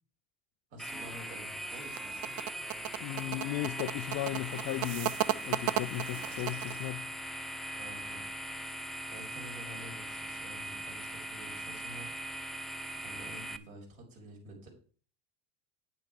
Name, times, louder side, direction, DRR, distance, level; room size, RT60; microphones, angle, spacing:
voice 1, 0.7-2.3 7.7-8.3 9.1-12.1 13.0-14.7, right 1 dB, 85° right, 5.1 m, -49 dB
sound 1, 0.8-13.6, right 1 dB, ahead, 0.7 m, -40 dB
sound 2, 1.7-6.9, right 14 dB, 65° right, 0.7 m, -35 dB
voice 2, 3.0-5.2 5.4-7.1, left 18 dB, 50° left, 0.5 m, -36 dB
8.8 x 7.8 x 4.7 m
supercardioid pair, 90°, 39 cm